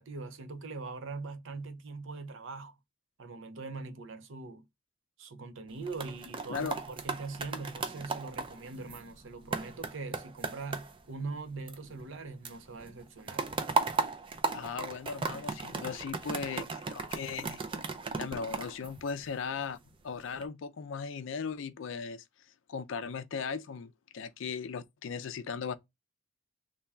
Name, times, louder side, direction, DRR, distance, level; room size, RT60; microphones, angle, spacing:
voice 1, 0.0-2.7 3.2-4.6 5.2-13.5, right 3 dB, 65° right, 0.6 m, -42 dB
sound 1, 5.7-12.2 12.4-19.6 20.1-20.4, right 4 dB, 25° right, 0.4 m, -36 dB
voice 2, 14.5-17.6 18.2-19.8 20.0-22.2 22.7-25.8, left 5 dB, 70° left, 0.4 m, -37 dB
3.5 x 2.2 x 4.1 m
head